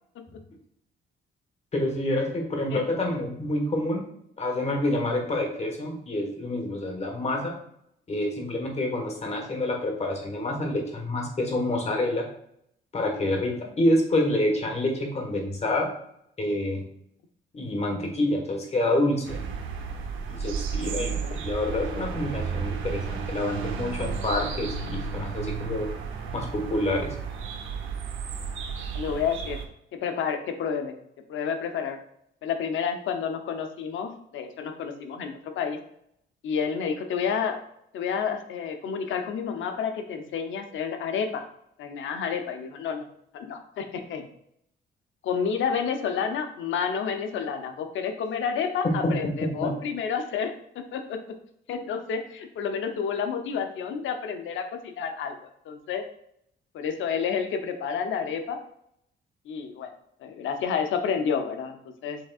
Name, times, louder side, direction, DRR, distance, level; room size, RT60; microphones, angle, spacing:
voice 1, 1.7-4.1 4.4-7.5 8.1-12.3 12.9-15.9 16.4-16.8 17.5-19.4 20.3-25.9 26.3-27.1 48.8-49.7, left 1 dB, 35° left, 1 dB, 1.4 m, -27 dB
sound 1, 19.2-29.6, right 5 dB, 80° right, 0.7 m, -33 dB
voice 2, 28.9-29.6 29.9-30.9 31.3-32.0 32.4-35.8 36.4-37.6 37.9-41.4 41.8-43.1 43.3-44.2 45.2-51.2 51.7-54.7 55.0-55.4 55.6-56.0 56.7-58.6 59.5-59.9 60.2-62.2, left 6 dB, 75° left, 6 dB, 0.8 m, -30 dB
6.2 x 3.6 x 2.4 m, 0.71 s
cardioid pair, 90°, 20 cm